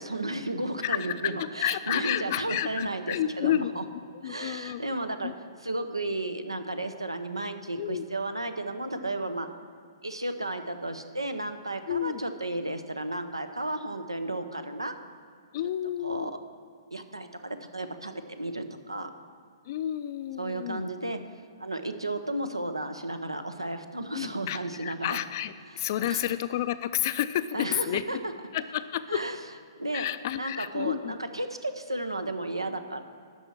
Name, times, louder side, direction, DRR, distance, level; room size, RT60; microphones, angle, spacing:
voice 1, 0.0-3.8 4.2-5.3 5.6-9.5 10.0-14.9 16.0-16.3 16.9-19.1 20.4-21.2 21.6-25.2 25.7-26.3 27.5-28.2 29.1-29.4 29.8-30.1 30.4-33.0, right 2 dB, 85° right, 9 dB, 0.8 m, -33 dB
voice 2, 0.8-3.7 4.2-4.8 5.2-5.3 7.8-8.1 11.9-12.2 15.5-16.3 19.7-20.9 24.1-28.0 28.5-29.2 29.9-31.2, left 11 dB, 40° left, 13 dB, 0.4 m, -30 dB
12.0 x 4.3 x 7.5 m, 2.3 s
figure-of-eight pair, 120°, 2 cm